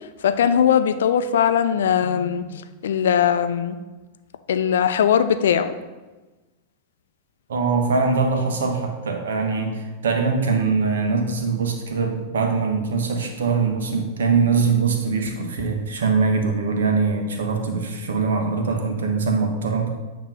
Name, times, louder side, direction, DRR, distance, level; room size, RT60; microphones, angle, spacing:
voice 1, 0.2-3.8 4.5-5.7, left 8 dB, 60° left, 10 dB, 0.5 m, -20 dB
voice 2, 7.5-19.9, right 4 dB, 65° right, 3 dB, 1.1 m, -22 dB
8.9 x 3.1 x 5.7 m, 1.2 s
figure-of-eight pair, 90°, 0 cm